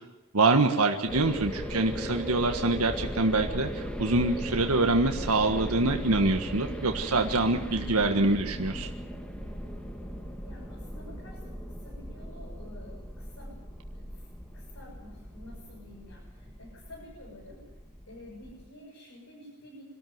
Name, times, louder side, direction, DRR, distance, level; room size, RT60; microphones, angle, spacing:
voice 1, 0.3-8.9, right 2 dB, 85° right, 5 dB, 1.6 m, -25 dB
sound 1, 1.1-18.7, equal, 5° left, 2.0 m, -38 dB
voice 2, 10.5-13.6 13.9-14.3 14.5-17.6 18.1-19.8, left 1 dB, 75° left, -3 dB, 6.9 m, -50 dB
25.5 x 13.5 x 9.4 m, 1.0 s
head